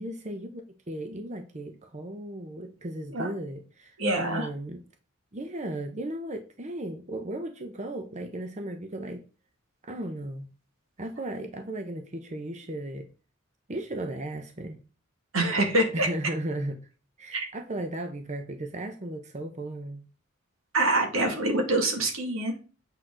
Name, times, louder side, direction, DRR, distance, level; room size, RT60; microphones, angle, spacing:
voice 1, 0.0-4.8 5.3-9.2 9.8-10.5 11.0-13.1 13.7-14.8 15.9-16.8 17.2-20.0, right 1 dB, 35° right, 5 dB, 0.8 m, -35 dB
voice 2, 4.0-4.5 15.3-16.1 17.3-17.5 20.7-22.6, right 2 dB, 80° right, 2 dB, 2.4 m, -25 dB
8.4 x 6.2 x 3.9 m, 0.35 s
head